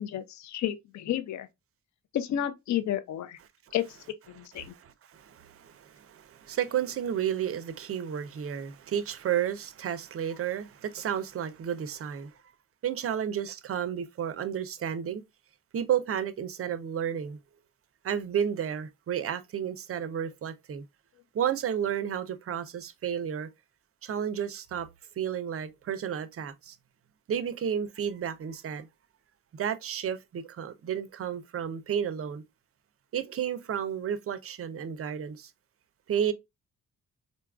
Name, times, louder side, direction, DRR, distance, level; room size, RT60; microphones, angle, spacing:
voice 1, 0.0-1.5 2.1-3.4 3.7-3.8 4.4-4.7, left 11 dB, 55° left, 0.4 m, -31 dB
voice 2, 4.6-12.3 12.8-15.2 15.7-17.4 18.0-20.8 21.3-23.5 24.0-24.9 25.2-26.8 27.3-28.9 29.6-32.4 33.1-35.5 36.1-36.3, right 9 dB, 45° right, 0.5 m, -32 dB
3.9 x 2.3 x 2.2 m
cardioid pair, 95°, 34 cm